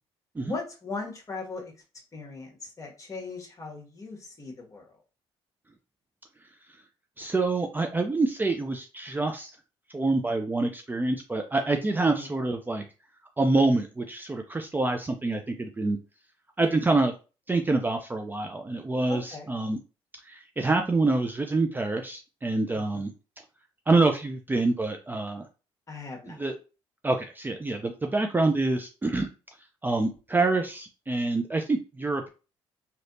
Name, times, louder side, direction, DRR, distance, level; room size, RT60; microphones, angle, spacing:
voice 1, 0.4-1.7 2.1-5.0 12.2-12.3 19.1-19.5 22.7-23.1 25.9-26.4, left 3 dB, 30° left, 0 dB, 1.4 m, -38 dB
voice 2, 7.2-9.5 9.9-12.8 13.4-16.0 16.6-17.1 17.5-19.8 20.3-23.1 23.9-25.4 26.3-26.5 27.0-29.3 29.8-32.3, right 3 dB, 15° right, 4 dB, 0.5 m, -26 dB
3.2 x 2.8 x 2.7 m, 0.32 s
supercardioid pair, 80°, 11 cm